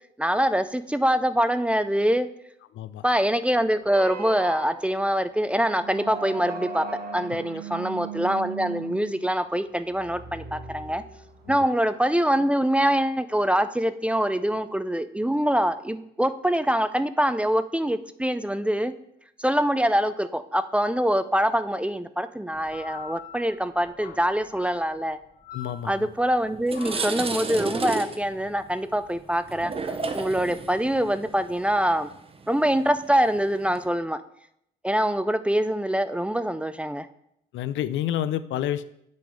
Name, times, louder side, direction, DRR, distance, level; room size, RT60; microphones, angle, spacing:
voice 1, 0.2-2.3 3.0-6.9 7.1-11.0 11.5-18.9 19.4-25.2 25.8-32.1 32.5-34.2 34.8-37.1, equal, 5° right, 12 dB, 0.3 m, -24 dB
sound 1, 3.8-11.6, right 5 dB, 50° right, 1.2 m, -38 dB
sound 2, 22.5-31.7, left 6 dB, 55° left, 2.0 m, -47 dB
voice 2, 25.5-26.1 37.5-38.8, left 11 dB, 75° left, 14 dB, 0.5 m, -29 dB
sound 3, 26.0-26.2 26.5-33.8, right 4 dB, 30° right, 0.7 m, -33 dB
7.6 x 3.8 x 5.1 m, 0.75 s
cardioid pair, 90°, 20 cm